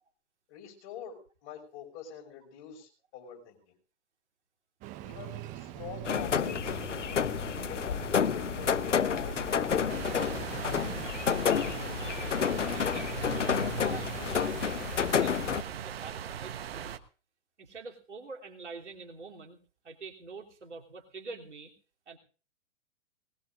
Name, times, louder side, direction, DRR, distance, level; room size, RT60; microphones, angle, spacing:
voice 1, 0.5-3.7 5.0-6.8 7.1-10.5, left 8 dB, 40° left, 2 dB, 6.2 m, -46 dB
Engine starting, 4.8-11.1, right 14 dB, 20° right, 0.7 m, -43 dB
sound 1, 6.0-15.6, left 7 dB, 85° left, 0.7 m, -30 dB
sound 2, 9.9-17.0, right 9 dB, 55° right, 1.2 m, -39 dB
voice 2, 12.7-13.4 13.8-17.0 17.6-19.6 19.8-21.7 22.1-22.2, right 4 dB, 75° right, 0 dB, 3.4 m, -46 dB
20.5 x 20.0 x 2.6 m, 0.38 s
figure-of-eight pair, 115°, 35 cm